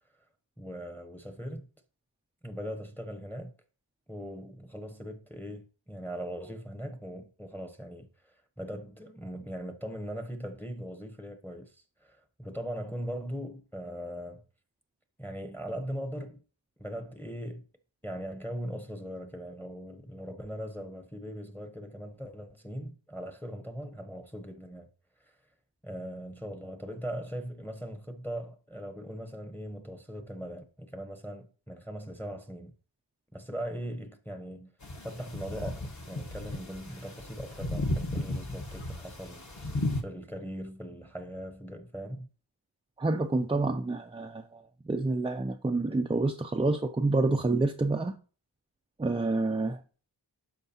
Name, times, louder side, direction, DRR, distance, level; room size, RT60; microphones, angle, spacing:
voice 1, 0.6-1.7 2.4-3.5 4.1-8.1 8.6-14.4 15.2-16.4 16.8-17.7 18.0-24.9 25.8-32.7 33.3-34.7 35.0-39.5 40.0-42.3, equal, 5° left, 0.8 m, -40 dB
sound 1, 34.8-40.0, left 1 dB, 40° left, 1.2 m, -35 dB
voice 2, 43.0-48.2 49.0-49.8, right 3 dB, 15° right, 0.3 m, -28 dB
12.5 x 4.6 x 2.8 m
wide cardioid pair, 90°, 45 cm